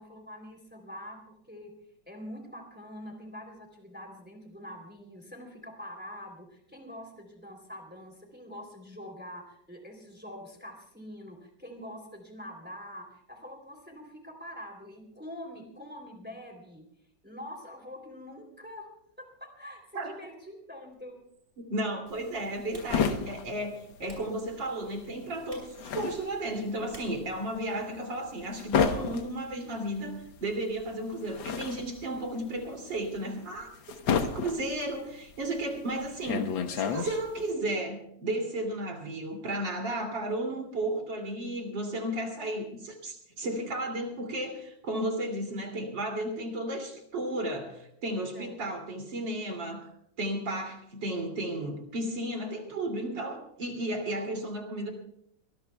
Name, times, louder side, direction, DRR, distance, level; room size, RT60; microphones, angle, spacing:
voice 1, 0.0-1.7 2.1-16.8 17.2-18.9 19.2-21.2 42.2-42.5 48.3-48.6 54.1-54.4, left 1 dB, 5° right, 3 dB, 3.2 m, -45 dB
Typing, 20.9-28.4, right 1 dB, 30° right, 4.9 m, -58 dB
voice 2, 21.6-33.7 34.4-49.9 50.2-54.9, right 1 dB, 70° right, 3 dB, 3.5 m, -33 dB
sound 1, 22.1-24.6 24.9-37.5, left 6 dB, 85° left, 1.9 m, -32 dB
22.5 x 19.5 x 2.3 m, 0.72 s
omnidirectional pair, 2.1 m